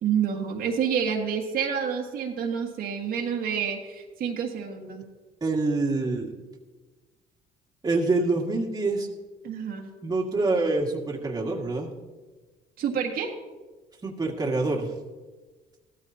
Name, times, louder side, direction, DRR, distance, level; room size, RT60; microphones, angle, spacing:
voice 1, 0.0-5.0 9.4-9.9 12.8-13.3, right 7 dB, 60° right, 1 dB, 1.7 m, -28 dB
voice 2, 5.4-6.3 7.8-9.1 10.0-11.9 14.0-14.9, right 3 dB, 20° right, -1 dB, 1.9 m, -26 dB
16.0 x 13.0 x 2.8 m, 1.3 s
cardioid pair, 110°, 17 cm